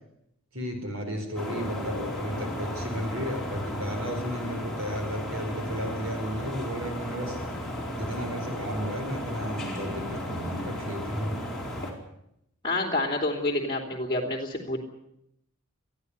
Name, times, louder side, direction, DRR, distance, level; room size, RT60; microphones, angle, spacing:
voice 1, 0.5-7.4 7.9-11.4, equal, 70° right, 5 dB, 4.6 m, -33 dB
sound 1, 1.4-11.9, left 1 dB, ahead, 4.5 m, -34 dB
voice 2, 12.6-14.8, left 2 dB, 20° left, -2 dB, 3.2 m, -28 dB
21.5 x 14.0 x 9.7 m, 0.79 s
head